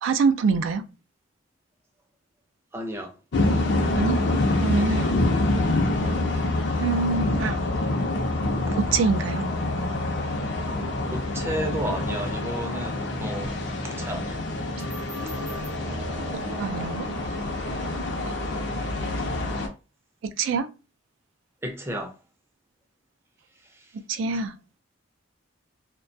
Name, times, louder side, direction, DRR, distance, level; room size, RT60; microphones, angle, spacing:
voice 1, 0.0-0.9 4.0-4.2 4.6-5.2 6.8-7.6 8.7-9.5 16.6-17.1 18.3-18.4 20.4-20.7 24.1-24.6, right 4 dB, 80° right, 0.3 m, -25 dB
voice 2, 2.7-3.2 8.6-8.8 11.1-14.5 19.2-19.3 21.6-22.2 23.6-24.0, right 1 dB, 10° right, 0.4 m, -33 dB
sound 1, 3.3-19.7, left 2 dB, 60° left, 0.5 m, -26 dB
sound 2, 12.0-12.3 14.8-19.2, right 1 dB, 50° right, 0.8 m, -40 dB
2.2 x 2.2 x 2.5 m
head